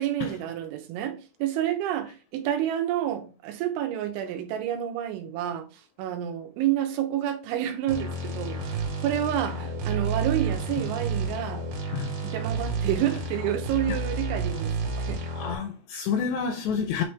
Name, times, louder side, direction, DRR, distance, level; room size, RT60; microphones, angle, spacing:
voice 1, 0.0-5.7 6.0-11.7 12.2-15.3, right 11 dB, 80° right, 3.3 m, -29 dB
sound 1, 7.9-15.6, right 3 dB, 60° right, 3.4 m, -30 dB
voice 2, 15.3-17.0, left 7 dB, 80° left, 2.5 m, -29 dB
9.2 x 3.2 x 3.4 m
omnidirectional pair, 5.5 m